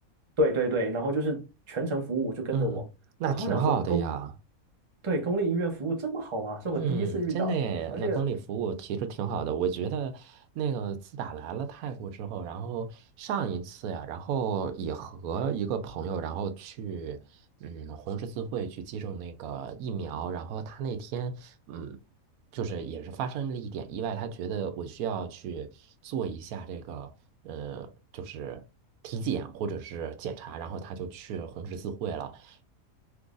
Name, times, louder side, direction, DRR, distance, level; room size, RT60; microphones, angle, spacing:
voice 1, 0.4-2.9 3.3-4.0 5.0-7.6 7.9-8.3, right 2 dB, 30° right, 0.6 m, -29 dB
voice 2, 3.2-4.3 6.7-17.2 17.6-22.0 22.5-25.7 26.0-27.1 27.4-28.6 29.0-32.6, right 6 dB, 85° right, 1.0 m, -33 dB
3.8 x 3.1 x 2.4 m
omnidirectional pair, 1.5 m